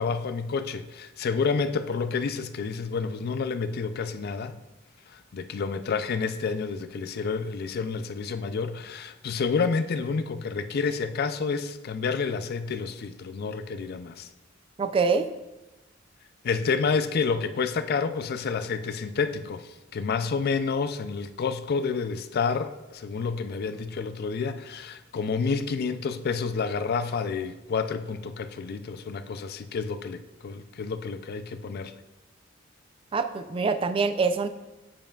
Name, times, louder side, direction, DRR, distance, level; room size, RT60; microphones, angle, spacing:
voice 1, 0.0-4.5 5.1-14.3 16.4-31.9, left 5 dB, 50° left, 11 dB, 0.4 m, -29 dB
voice 2, 14.8-15.3 33.1-34.5, right 4 dB, 25° right, 9 dB, 0.3 m, -25 dB
7.5 x 7.0 x 2.3 m, 1.0 s
head